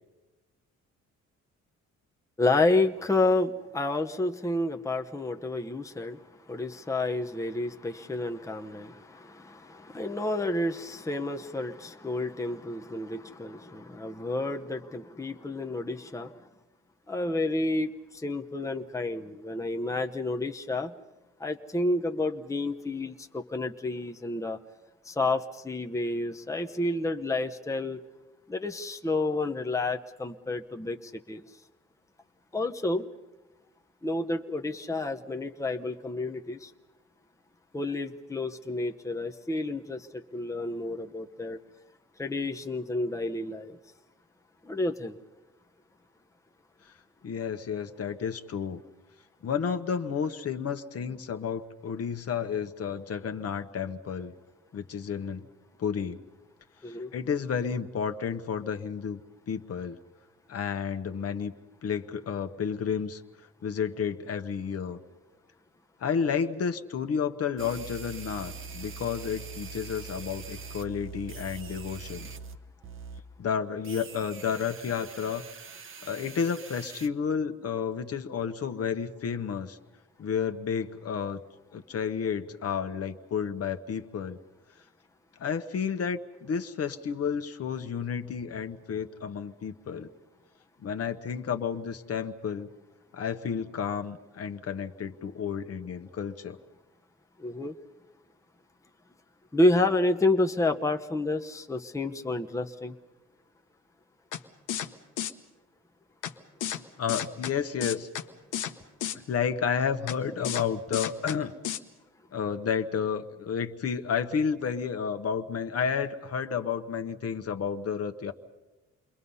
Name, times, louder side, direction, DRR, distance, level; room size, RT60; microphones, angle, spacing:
voice 1, 2.4-16.3 17.1-20.9 21.4-24.6 25.0-28.0 28.5-31.4 32.5-33.0 34.0-36.7 37.7-41.6 42.2-43.8 44.6-45.2 56.8-57.1 97.4-97.7 99.5-103.0, left 2 dB, 10° left, 4 dB, 0.9 m, -30 dB
voice 2, 47.2-48.8 49.4-54.3 54.7-55.4 55.8-56.2 56.9-59.2 59.5-60.0 60.5-61.5 61.8-63.2 63.6-65.0 66.0-72.3 73.4-75.4 76.0-79.8 80.2-81.4 81.7-84.4 85.4-90.1 90.8-92.7 93.1-96.6 107.0-108.1 109.3-111.5 112.3-118.3, left 7 dB, 50° left, 7 dB, 1.2 m, -31 dB
sound 1, 67.6-72.6 72.8-73.2 73.8-77.1, right 5 dB, 45° right, 1.1 m, -43 dB
sound 2, 104.3-104.4 104.7-104.9 105.2-105.3 106.2-106.3 106.6-106.8 107.1-107.5 107.8-108.2 108.5-108.7 109.0-109.2 110.1-110.2 110.4-110.6 110.9-111.4 111.6-111.8, left 10 dB, 85° left, 1.1 m, -32 dB
29.0 x 21.5 x 5.6 m, 1.1 s
cardioid pair, 90°, 30 cm